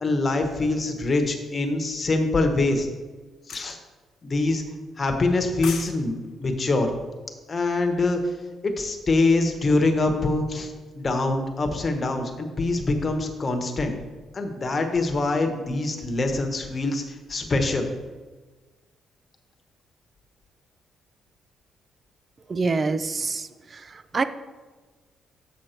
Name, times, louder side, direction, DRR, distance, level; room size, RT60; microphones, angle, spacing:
voice 1, 0.0-2.9 3.5-3.8 4.2-4.6 5.0-6.1 6.4-7.0 7.5-8.2 8.6-13.9 14.3-17.9, left 2 dB, 35° left, 5 dB, 1.2 m, -24 dB
sound 1, 3.5-3.7 5.3-5.9 6.2-6.4, left 6 dB, 70° left, 1.1 m, -35 dB
voice 2, 22.5-23.5 24.1-24.2, right 4 dB, 35° right, 12 dB, 0.5 m, -24 dB
7.3 x 6.5 x 4.5 m, 1.3 s
cardioid pair, 90°, 0 cm